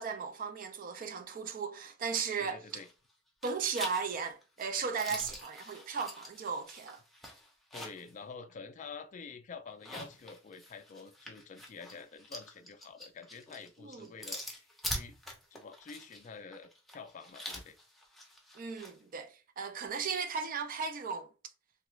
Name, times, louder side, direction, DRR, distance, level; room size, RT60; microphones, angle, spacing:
voice 1, 0.0-2.6 3.4-7.0 13.8-14.1 18.6-21.3, right 5 dB, 45° right, 0.4 m, -36 dB
voice 2, 2.4-2.9 5.1-5.3 7.7-15.2 15.5-17.8, left 5 dB, 40° left, 0.3 m, -48 dB
sound 1, 2.7-3.1 3.4-8.1 8.5-8.6 9.7-18.9, left 1 dB, ahead, 0.6 m, -45 dB
3.0 x 2.3 x 3.0 m
head